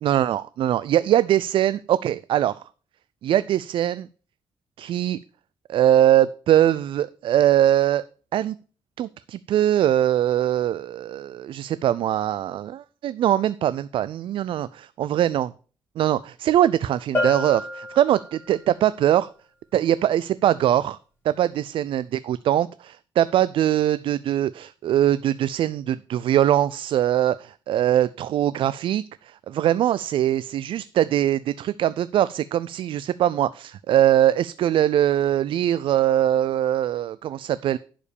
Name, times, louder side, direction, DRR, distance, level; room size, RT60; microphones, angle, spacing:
voice 1, 0.0-2.6 3.2-4.1 4.8-5.2 5.7-8.0 8.3-8.5 9.0-15.5 16.0-19.3 19.7-21.0 21.2-37.8, right 11 dB, 75° right, 16 dB, 0.4 m, -22 dB
Bell, 17.1-18.7, left 2 dB, 25° left, 5.0 m, -29 dB
11.0 x 5.1 x 6.7 m, 0.39 s
cardioid pair, 120°, 9 cm